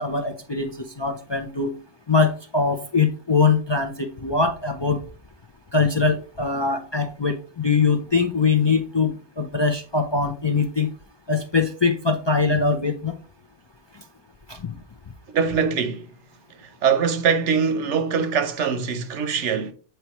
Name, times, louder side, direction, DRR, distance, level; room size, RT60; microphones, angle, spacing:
voice 1, 0.0-1.7 2.1-5.0 5.7-10.9 11.3-13.2 14.5-14.8, left 4 dB, 40° left, 0.4 m, -22 dB
voice 2, 15.3-16.1 16.6-19.7, right 6 dB, 90° right, 1.1 m, -23 dB
8.0 x 4.6 x 3.0 m
omnidirectional pair, 1.2 m